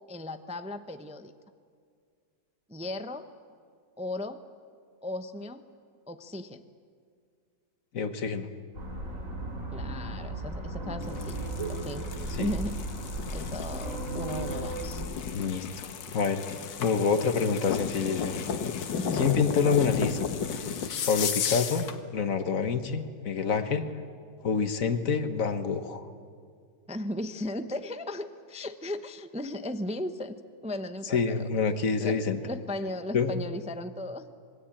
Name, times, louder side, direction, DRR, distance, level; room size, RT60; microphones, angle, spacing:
voice 1, 0.1-1.3 2.7-3.3 4.0-4.4 5.0-5.6 6.1-6.6 9.7-12.0 12.4-12.8 13.3-15.0 18.9-19.2 26.9-31.5 32.0-34.4, left 1 dB, 10° right, 9 dB, 0.4 m, -36 dB
voice 2, 7.9-8.5 12.4-12.5 15.3-15.9 16.1-16.4 16.8-18.4 19.1-20.2 21.1-21.8 22.1-23.9 24.4-26.1 31.1-32.4 33.1-33.4, left 5 dB, 50° left, 9 dB, 1.5 m, -27 dB
sound 1, 8.7-15.1, right 2 dB, 45° right, 3.3 m, -35 dB
sound 2, 11.0-22.0, left 7 dB, 90° left, 1.9 m, -34 dB
26.5 x 21.5 x 8.8 m, 2.1 s
omnidirectional pair, 1.9 m